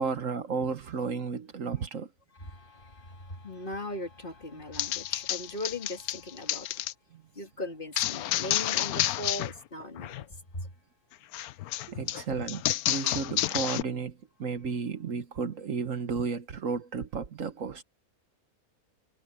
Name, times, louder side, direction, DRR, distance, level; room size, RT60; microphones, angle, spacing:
voice 1, 0.0-2.1 7.1-7.2 11.9-17.8, right 5 dB, 60° right, 1.4 m, -33 dB
voice 2, 2.3-6.9 7.3-10.7, left 1 dB, 35° left, 2.9 m, -39 dB
sound 1, 4.7-6.9 8.0-9.5 9.8-10.2 11.3-13.8, left 14 dB, 80° left, 1.1 m, -30 dB
omnidirectional pair, 1.6 m